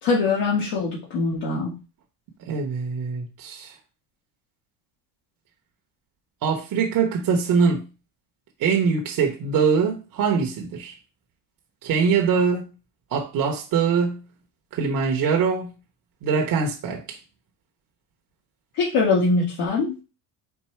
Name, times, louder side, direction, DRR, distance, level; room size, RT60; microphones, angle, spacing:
voice 1, 0.0-1.7 18.8-19.9, left 3 dB, 65° left, 1.8 m, -22 dB
voice 2, 2.5-3.7 6.4-7.8 8.6-11.0 11.8-12.7 13.1-14.2 14.7-15.7 16.2-17.2, right 5 dB, 45° right, 1.0 m, -23 dB
4.5 x 2.7 x 4.4 m
cardioid pair, 110°, 44 cm